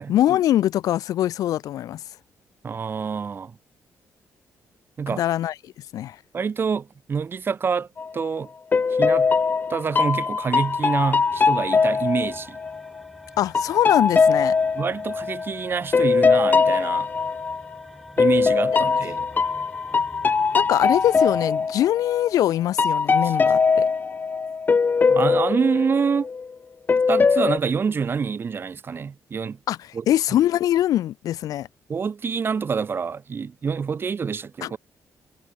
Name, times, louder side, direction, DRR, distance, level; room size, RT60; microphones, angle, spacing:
voice 1, 0.0-2.0 5.2-6.2 13.4-14.5 20.6-23.9 29.7-31.7 34.6-34.7, left 12 dB, 85° left, 0.4 m, -23 dB
voice 2, 2.6-3.6 5.0-5.2 6.3-7.9 8.1-8.5 8.9-9.3 9.7-12.6 14.8-17.1 18.2-19.3 25.1-26.3 27.1-29.6 29.9-30.0 31.9-34.8, right 6 dB, 40° right, 0.8 m, -26 dB
sound 1, 8.0-8.3 8.7-13.0 13.5-17.8 18.2-22.4 22.8-26.5 26.9-27.6, left 5 dB, 30° left, 0.6 m, -21 dB
sound 2, 10.5-21.4, equal, ahead, 2.5 m, -48 dB
cardioid pair, 120°, 6 cm